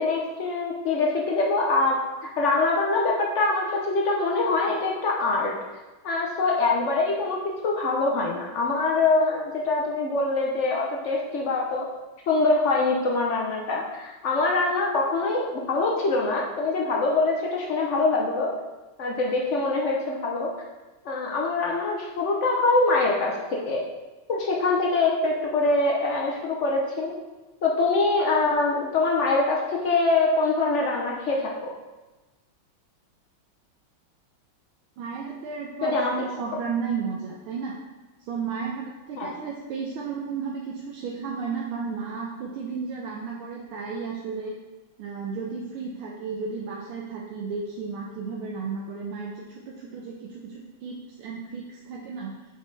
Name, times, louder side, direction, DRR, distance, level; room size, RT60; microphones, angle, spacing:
voice 1, 0.0-2.0 2.4-5.5 6.0-7.4 7.6-11.9 12.3-18.5 19.0-20.5 21.0-23.8 24.3-27.1 27.6-31.7 35.8-36.1 39.2-39.3, left 3 dB, 75° left, -1 dB, 0.6 m, -24 dB
voice 2, 35.0-37.8 38.2-44.6 45.0-52.3, right 5 dB, 80° right, -2 dB, 1.6 m, -33 dB
7.0 x 5.2 x 3.3 m, 1.2 s
omnidirectional pair, 2.3 m